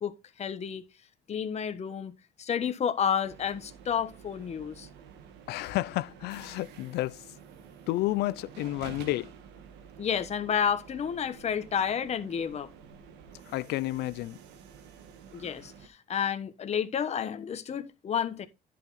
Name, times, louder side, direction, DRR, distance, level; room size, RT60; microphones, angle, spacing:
voice 1, 0.0-0.8 1.3-2.1 2.4-4.9 10.0-12.7 15.3-18.5, left 8 dB, 40° left, 1.2 m, -30 dB
sound 1, 3.2-15.9, right 7 dB, 90° right, 1.6 m, -50 dB
voice 2, 5.5-7.2 7.9-9.3 13.5-14.4, left 17 dB, 75° left, 0.5 m, -31 dB
11.0 x 5.9 x 4.1 m
cardioid pair, 110°, 17 cm